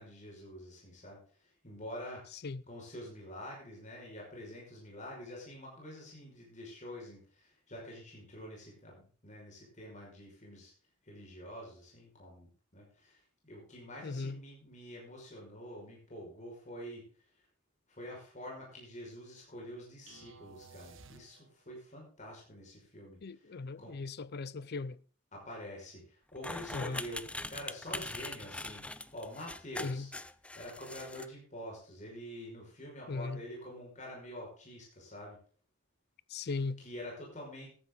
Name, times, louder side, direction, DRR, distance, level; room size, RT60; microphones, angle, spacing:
voice 1, 0.0-2.3 2.7-10.7 11.0-17.5 17.9-24.0 25.3-30.1 30.5-35.4 36.8-37.7, equal, 40° left, 5.8 m, -47 dB
voice 2, 14.0-14.4 23.2-25.0 26.7-27.0 29.8-30.1 33.1-33.4 36.3-36.8, left 3 dB, 55° left, 0.5 m, -38 dB
sound 1, 20.1-21.8, right 5 dB, 80° right, 1.9 m, -55 dB
sound 2, 26.4-31.3, left 2 dB, 5° left, 0.5 m, -42 dB
14.5 x 12.5 x 4.0 m
head